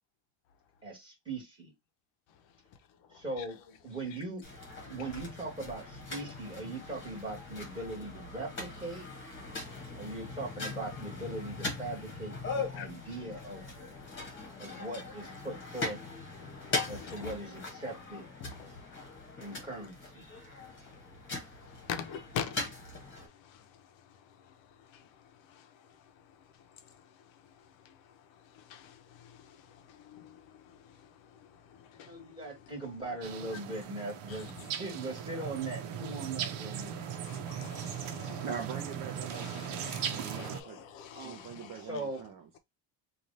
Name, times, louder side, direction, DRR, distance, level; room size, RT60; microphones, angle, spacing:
voice 1, 0.8-1.7 3.1-3.6 3.8-4.4 4.9-9.1 10.0-13.7 14.6-16.0 16.9-18.2 19.4-20.2 32.0-37.1 37.7-37.8 41.1-42.2, right 2 dB, 10° right, 1.7 m, -40 dB
voice 2, 2.3-3.5 4.1-4.2 4.9-5.1 6.2-6.3 9.4-10.2 12.6-12.9 13.9-14.9 15.9-16.0 16.3-17.4 18.4-19.6 20.3-32.7 34.3-34.7 36.7-36.8 37.2-38.6 39.3-42.2, left 8 dB, 65° left, 0.7 m, -47 dB
sound 1, 4.4-23.3, left 3 dB, 25° left, 1.2 m, -41 dB
sound 2, 33.2-40.6, right 8 dB, 85° right, 0.9 m, -38 dB
voice 3, 38.4-40.8 41.2-42.6, right 7 dB, 40° right, 0.6 m, -43 dB
3.2 x 2.5 x 4.0 m
cardioid pair, 180°, 49 cm